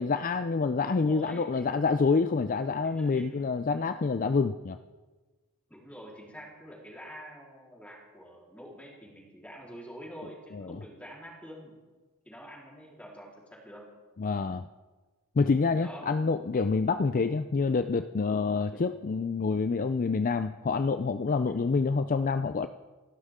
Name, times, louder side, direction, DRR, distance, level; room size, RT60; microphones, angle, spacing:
voice 1, 0.0-4.8 10.5-10.8 14.2-14.7 15.4-22.7, left 4 dB, 40° left, 10 dB, 0.4 m, -27 dB
voice 2, 1.0-1.7 2.8-3.5 5.7-11.7 12.2-13.9 15.8-16.1 18.7-18.8, equal, 5° left, -3 dB, 3.9 m, -46 dB
28.0 x 12.0 x 3.7 m, 1.3 s
head